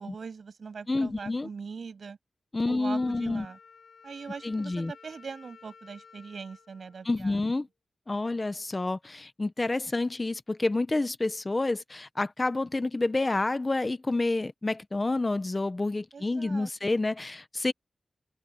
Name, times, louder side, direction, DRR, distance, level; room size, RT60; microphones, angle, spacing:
voice 1, 0.0-2.2 2.7-3.6 4.0-7.4 16.1-17.0, right 5 dB, 60° right, 7.9 m, -41 dB
voice 2, 0.9-1.5 2.5-3.5 4.4-4.9 7.0-7.7 8.1-17.7, left 2 dB, 25° left, 0.9 m, -29 dB
Wind instrument woodwind instrument, 2.9-7.7, left 6 dB, 75° left, 4.2 m, -54 dB
wide cardioid pair, 105°, 0 cm